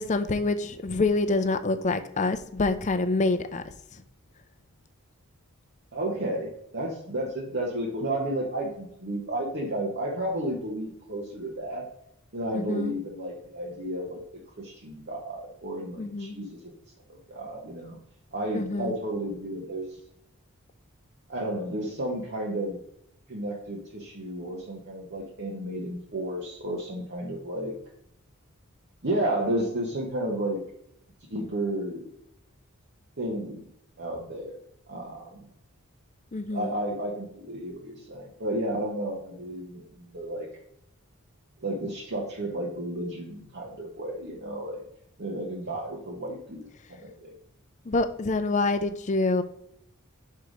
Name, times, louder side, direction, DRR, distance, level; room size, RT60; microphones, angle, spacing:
voice 1, 0.0-3.6 12.5-12.9 16.0-16.4 18.5-19.0 36.3-36.7 47.9-49.4, left 3 dB, 30° left, 10 dB, 0.5 m, -26 dB
voice 2, 5.9-11.8 12.3-14.2 14.6-16.7 17.3-18.0 18.3-20.0 21.3-22.8 23.3-27.7 29.0-30.6 31.3-32.1 33.2-33.6 34.0-34.6 34.9-35.4 36.5-40.5 41.6-44.8 45.2-47.3, right 1 dB, 50° right, -2 dB, 1.1 m, -32 dB
5.5 x 4.8 x 5.0 m, 0.75 s
head